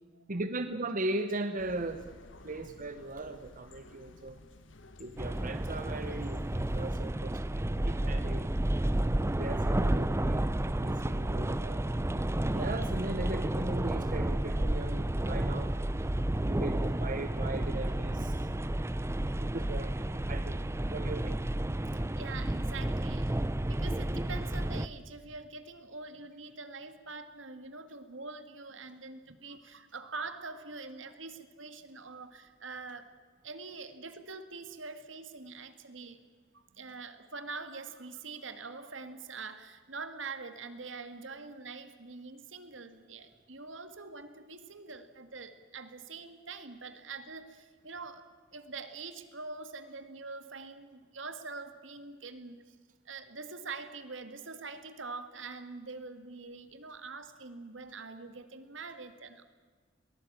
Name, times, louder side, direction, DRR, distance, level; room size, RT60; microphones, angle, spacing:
voice 1, 0.3-2.1 2.4-4.4 5.0-7.4 7.7-8.5 9.2-12.2 12.5-15.7 16.4-18.5 19.5-19.9 20.3-20.6 20.9-21.3, right 2 dB, 45° right, 9 dB, 1.0 m, -38 dB
sound 1, 1.6-7.0, left 1 dB, 70° left, 1.6 m, -53 dB
sound 2, 5.2-24.9, right 1 dB, 15° right, 0.6 m, -31 dB
voice 2, 21.9-33.1 33.4-36.2 36.5-48.2 48.5-52.6 53.1-59.4, right 4 dB, 75° right, 10 dB, 2.0 m, -44 dB
22.5 x 18.5 x 8.8 m, 1.5 s
head